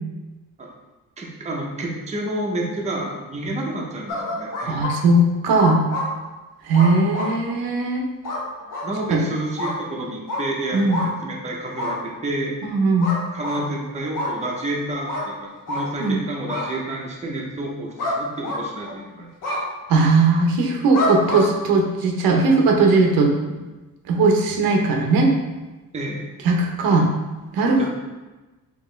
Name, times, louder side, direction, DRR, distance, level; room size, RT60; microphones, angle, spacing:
voice 1, 1.2-4.8 8.8-12.5 13.3-19.3 25.9-26.3 27.8-27.9, right 1 dB, 20° right, -2 dB, 0.6 m, -29 dB
sound 1, 4.1-4.9 5.6-6.1 6.7-7.3 8.2-8.4 8.7-8.9 9.6-9.7 10.3-10.4 10.9-11.1 11.8-11.9 13.0-13.6 14.1-14.3 15.1-15.3 15.7-15.8 16.5-16.7 18.0-18.2 18.4-19.0 19.4-19.6 20.9-21.5, left 2 dB, 65° left, 1.0 m, -26 dB
voice 2, 4.7-5.8 6.6-8.0 9.1-9.2 10.7-11.0 12.6-13.1 16.0-16.2 19.9-23.3 24.1-25.3 26.4-27.1 27.5-27.9, right 3 dB, 85° right, 1 dB, 0.8 m, -18 dB
4.6 x 2.9 x 3.1 m, 1.1 s
cardioid pair, 150°, 35 cm